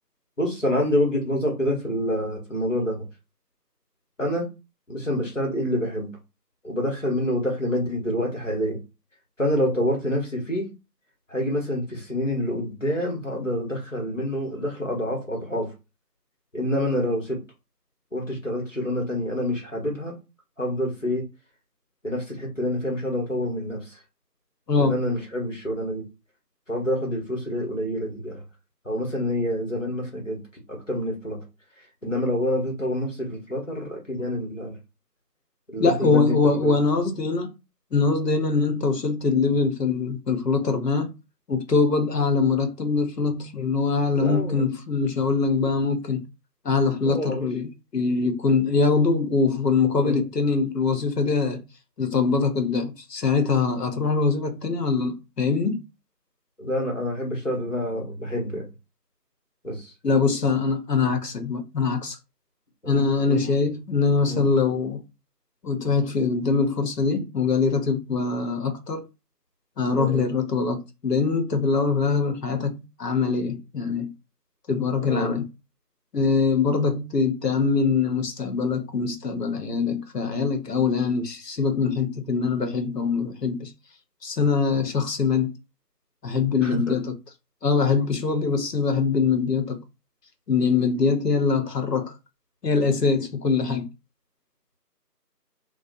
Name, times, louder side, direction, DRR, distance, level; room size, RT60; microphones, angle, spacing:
voice 1, 0.4-3.1 4.2-4.5 4.9-6.1 6.6-8.8 9.4-10.7 11.3-15.7 16.5-17.4 18.1-20.2 20.6-21.2 22.0-24.0 24.7-26.0 26.7-28.4 28.8-30.4 30.7-31.4 32.0-34.8 35.7-36.7 44.1-44.6 47.0-47.5 50.0-50.2 56.6-58.6 59.6-59.9 62.8-63.4 64.3-64.5 69.9-70.2 75.1-75.4 86.6-87.0, equal, 50° left, 1.0 m, -27 dB
voice 2, 35.8-37.5 37.9-41.1 41.5-46.2 46.6-51.6 52.0-55.8 60.0-62.2 62.9-65.0 65.6-69.1 69.8-74.1 74.7-75.5 76.1-83.7 84.2-85.5 86.2-87.1 87.6-89.8 90.5-92.1 92.6-93.9, left 4 dB, 75° left, 0.8 m, -23 dB
2.6 x 2.0 x 2.5 m
figure-of-eight pair, 180°, 49 cm